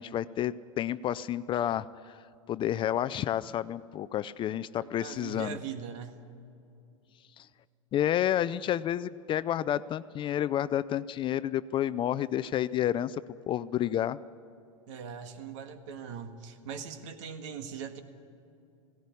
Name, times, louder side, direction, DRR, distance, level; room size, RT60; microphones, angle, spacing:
voice 1, 0.0-2.2 2.5-5.6 7.4-7.5 7.9-13.2 13.5-14.2, left 11 dB, 30° left, 16 dB, 0.5 m, -30 dB
voice 2, 4.8-6.3 14.9-18.0, right 6 dB, 65° right, 8 dB, 1.8 m, -41 dB
17.0 x 17.0 x 9.7 m, 2.6 s
hypercardioid pair, 110°, 17 cm